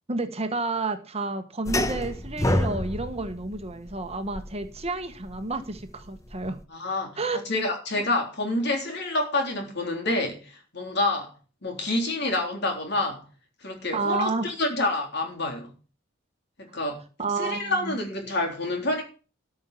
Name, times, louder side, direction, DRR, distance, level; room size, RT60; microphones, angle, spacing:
voice 1, 0.1-6.6 7.2-7.4 7.9-8.0 13.9-14.5 17.2-18.0, right 3 dB, 30° right, 1.2 m, -30 dB
sound 1, 1.7-6.6, left 1 dB, 15° left, 0.9 m, -29 dB
voice 2, 6.7-7.2 7.5-11.3 11.6-13.2 13.6-15.7 16.6-17.0 17.4-19.0, left 2 dB, 60° left, 3.5 m, -28 dB
13.5 x 5.4 x 7.0 m
head